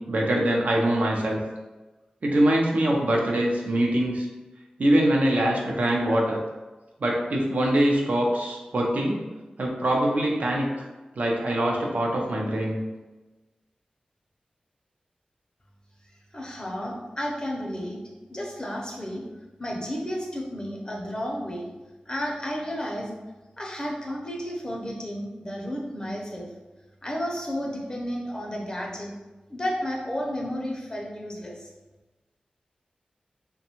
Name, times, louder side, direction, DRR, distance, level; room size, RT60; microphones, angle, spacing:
voice 1, 0.0-1.4 2.2-4.3 4.8-6.4 7.0-9.3 9.6-10.9 11.2-12.8, right 1 dB, 70° right, -1 dB, 0.5 m, -23 dB
voice 2, 16.3-18.0 18.3-19.2 19.6-21.7 22.1-23.1 23.6-26.5 27.0-29.1 29.5-31.7, equal, 30° left, -2 dB, 0.6 m, -32 dB
2.6 x 2.2 x 2.9 m, 1.1 s
cardioid pair, 50°, 3 cm